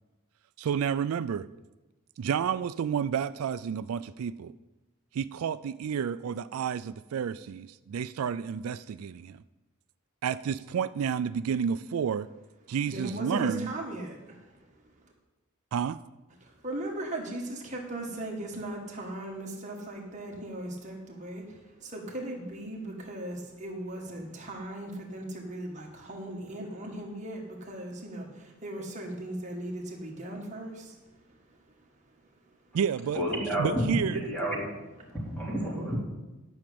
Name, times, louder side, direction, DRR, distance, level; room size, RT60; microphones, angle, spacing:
voice 1, 0.6-1.5 2.2-4.5 5.1-9.4 10.2-12.3 12.7-13.7 15.7-16.0 32.7-33.2 33.6-34.2, right 7 dB, 80° right, 15 dB, 0.3 m, -30 dB
voice 2, 12.9-14.4 16.6-21.4 21.8-30.9, right 1 dB, 35° right, 0 dB, 1.9 m, -38 dB
voice 3, 33.1-33.8 34.1-34.7 35.1-36.0, equal, 5° left, -4 dB, 3.0 m, -30 dB
10.5 x 6.3 x 8.6 m, 1.1 s
head